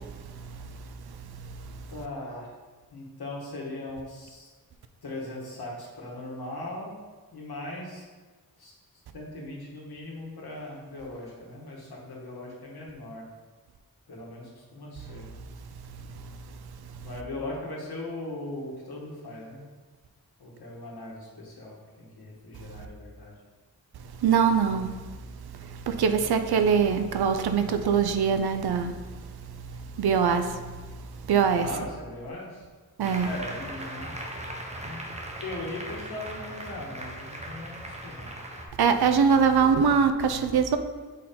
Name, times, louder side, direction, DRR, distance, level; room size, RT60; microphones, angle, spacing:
voice 1, 1.9-2.5 2.9-4.5 5.0-6.9 7.3-8.1 8.6-8.7 9.1-13.3 14.1-15.3 17.0-19.6 20.4-23.3 31.6-32.6 33.2-34.2 34.7-35.0 35.4-38.3, left 2 dB, 80° left, -3 dB, 1.5 m, -39 dB
voice 2, 24.1-25.0 25.6-29.0 29.7-30.7 31.1-31.7 33.0-33.3 38.8-40.8, right 6 dB, 85° right, 9 dB, 0.5 m, -23 dB
Applause, 33.0-38.7, right 1 dB, 20° right, 0.7 m, -39 dB
6.3 x 4.2 x 3.8 m, 1.4 s
wide cardioid pair, 130°, 37 cm